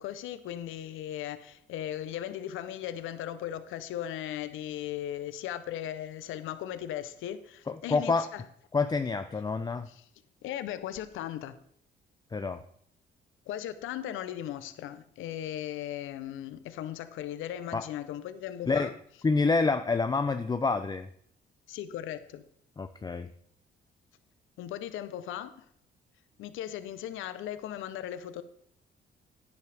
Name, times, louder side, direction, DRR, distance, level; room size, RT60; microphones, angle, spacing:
voice 1, 0.0-8.4 9.9-10.0 10.4-11.6 13.5-18.9 21.7-22.4 24.6-25.7 26.4-28.4, left 11 dB, 85° left, 0.7 m, -37 dB
voice 2, 7.7-8.3 8.7-9.9 12.3-12.6 17.7-17.8 18.7-18.9 19.2-21.1 22.8-23.3, left 4 dB, 20° left, 0.5 m, -27 dB
10.0 x 9.6 x 3.4 m
cardioid pair, 90°, 20 cm